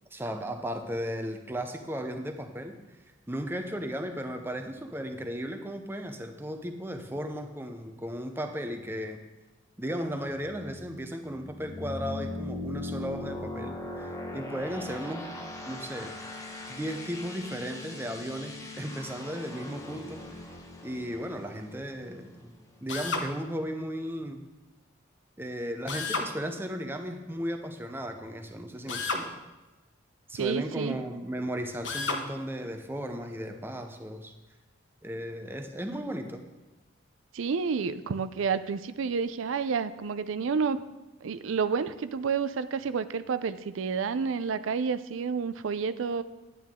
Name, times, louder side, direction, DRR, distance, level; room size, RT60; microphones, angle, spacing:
voice 1, 0.1-2.8 3.3-9.2 9.8-13.8 14.3-15.2 15.7-16.1 16.7-20.2 20.8-24.4 25.4-29.3 30.3-34.3 35.0-36.4, equal, 10° right, 6 dB, 0.7 m, -35 dB
sound 1, 10.3-22.9, left 2 dB, 15° left, 0.9 m, -40 dB
Drill, 22.9-23.3 25.9-26.3 28.9-29.3 31.8-32.2, left 4 dB, 65° left, 1.0 m, -31 dB
voice 2, 30.4-31.0 37.3-40.8 41.2-46.2, right 5 dB, 85° right, 13 dB, 0.4 m, -30 dB
10.5 x 9.3 x 3.6 m, 1.1 s
head